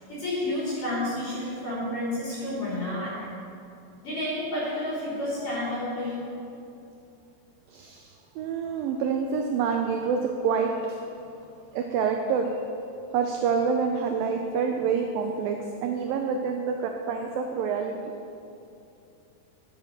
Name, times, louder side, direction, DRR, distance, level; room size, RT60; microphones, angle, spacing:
voice 1, 0.1-3.2 4.0-6.3, left 1 dB, 55° left, -8 dB, 4.2 m, -30 dB
voice 2, 7.7-8.1 8.4-11.0 11.7-12.6 13.1-18.0, right 6 dB, 85° right, 3 dB, 2.0 m, -27 dB
12.0 x 6.5 x 6.3 m, 2.7 s
omnidirectional pair, 4.8 m